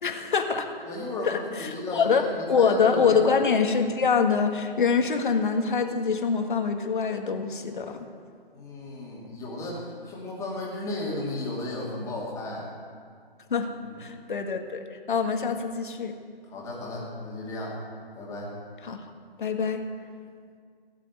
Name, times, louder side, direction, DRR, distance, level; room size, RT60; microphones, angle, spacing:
voice 1, 0.0-0.8 1.2-2.2 2.5-8.1 13.5-13.7 14.0-16.2 18.8-19.1 19.4-19.9, left 5 dB, 55° left, 5 dB, 1.7 m, -25 dB
voice 2, 0.8-3.2 8.5-12.7 13.8-14.0 16.5-17.8 18.1-18.5, left 2 dB, 10° left, -5 dB, 2.6 m, -34 dB
16.5 x 7.5 x 9.4 m, 2.1 s
figure-of-eight pair, 145°, 29 cm